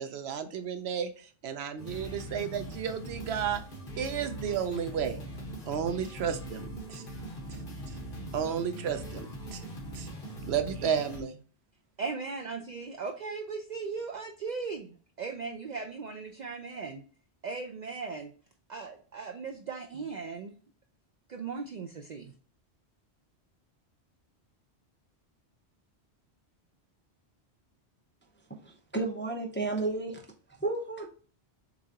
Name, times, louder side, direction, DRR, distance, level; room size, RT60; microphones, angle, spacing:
voice 1, 0.0-3.6 4.0-5.2 5.7-7.0 7.5-7.6 7.9-8.0 8.3-9.6 9.9-10.1 10.4-11.4, right 8 dB, 70° right, 9 dB, 0.9 m, -33 dB
sound 1, 1.8-11.2, right 1 dB, 55° left, 1.5 m, -41 dB
voice 2, 12.0-17.0 17.4-18.3 18.7-20.5 21.3-22.3, right 4 dB, 55° right, 4 dB, 0.5 m, -38 dB
voice 3, 28.6-30.2 30.6-31.1, right 3 dB, 15° left, 2 dB, 0.5 m, -32 dB
6.8 x 2.5 x 2.8 m, 0.41 s
omnidirectional pair, 1.1 m